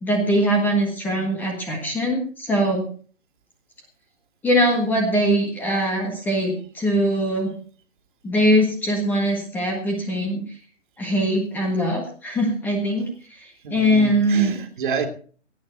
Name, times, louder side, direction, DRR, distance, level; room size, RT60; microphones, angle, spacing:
voice 1, 0.0-2.8 4.4-7.5 8.2-10.4 11.0-14.5, equal, 5° left, 1.5 m, -22 dB
voice 2, 13.6-15.1, right 5 dB, 40° right, 2.5 m, -29 dB
17.5 x 9.7 x 4.5 m
hypercardioid pair, 155°, 37 cm